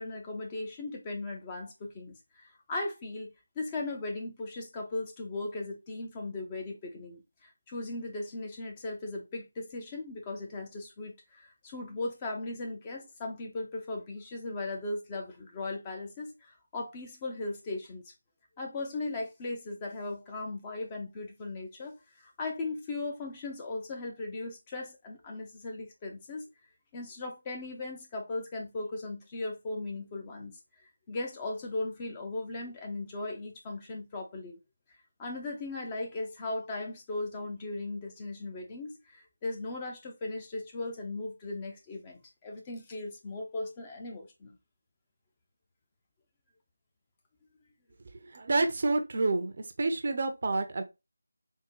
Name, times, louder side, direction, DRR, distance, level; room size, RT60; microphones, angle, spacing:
voice 1, 0.0-18.1 18.6-26.5 26.9-30.6 31.1-34.6 35.2-44.6, left 2 dB, 20° left, 0.5 m, -38 dB
voice 2, 48.3-49.5 49.8-50.8, right 3 dB, 45° right, 0.5 m, -28 dB
3.6 x 2.1 x 2.9 m
figure-of-eight pair, 165°, 0 cm